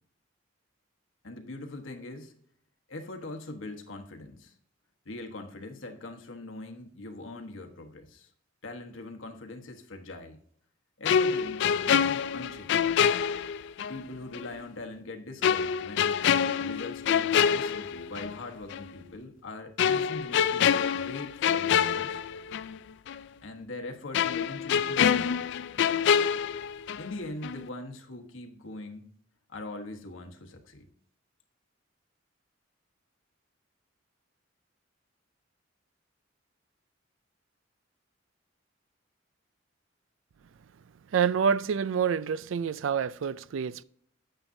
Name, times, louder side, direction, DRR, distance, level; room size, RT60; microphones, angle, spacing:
voice 1, 1.2-2.3 2.9-4.5 5.0-8.3 8.6-10.4 11.0-12.9 13.9-16.2 16.6-22.2 23.4-25.3 27.0-29.1 29.5-30.9, left 2 dB, 80° left, 1.2 m, -42 dB
sound 1, 11.0-14.0 14.3-14.5 15.4-18.4 18.7-18.9 19.8-22.8 23.1-23.2 24.1-27.2 27.4-27.7, left 8 dB, 65° left, 0.3 m, -26 dB
voice 2, 41.1-43.8, right 7 dB, 70° right, 0.4 m, -27 dB
9.0 x 8.8 x 2.7 m
head